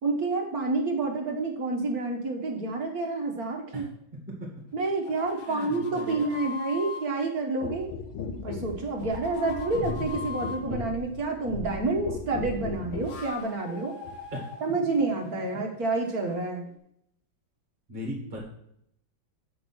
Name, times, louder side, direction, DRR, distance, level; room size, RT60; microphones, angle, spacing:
voice 1, 0.0-3.9 4.7-7.9 8.4-13.9 14.6-16.6, right 3 dB, 55° right, 2 dB, 1.4 m, -29 dB
sound 1, 4.8-7.0 8.5-10.6 12.8-16.8, left 5 dB, 35° left, 1.4 m, -42 dB
voice 2, 5.4-6.3 14.3-14.4 17.9-18.4, equal, 30° right, -1 dB, 2.0 m, -37 dB
sound 2, 7.6-13.2 14.0-14.2, left 4 dB, 80° left, 1.7 m, -36 dB
7.8 x 5.3 x 6.0 m, 0.73 s
omnidirectional pair, 2.2 m